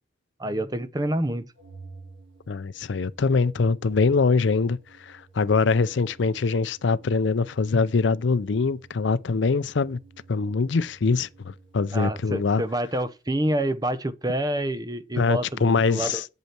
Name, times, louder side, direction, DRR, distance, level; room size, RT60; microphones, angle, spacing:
voice 1, 0.4-1.5 11.9-16.2, right 1 dB, 20° right, 0.7 m, -27 dB
Organ, 1.6-12.6, right 3 dB, 85° right, 3.0 m, -52 dB
voice 2, 2.5-10.0 10.3-12.6 15.2-16.3, left 4 dB, 65° left, 0.5 m, -23 dB
8.3 x 7.6 x 4.4 m
head